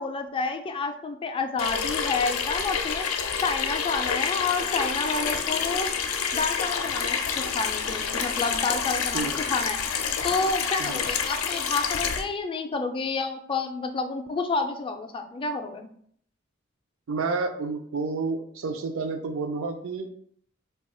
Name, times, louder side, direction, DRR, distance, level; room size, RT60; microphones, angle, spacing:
voice 1, 0.0-3.1 3.4-5.9 6.3-9.8 10.2-15.9, left 4 dB, 25° left, 6 dB, 0.3 m, -29 dB
Water tap faucet / Sink (filling or washing), 1.6-12.2, left 6 dB, 85° left, 0.4 m, -28 dB
voice 2, 17.1-20.1, right 4 dB, 75° right, 5 dB, 0.5 m, -30 dB
2.8 x 2.3 x 4.2 m, 0.63 s
head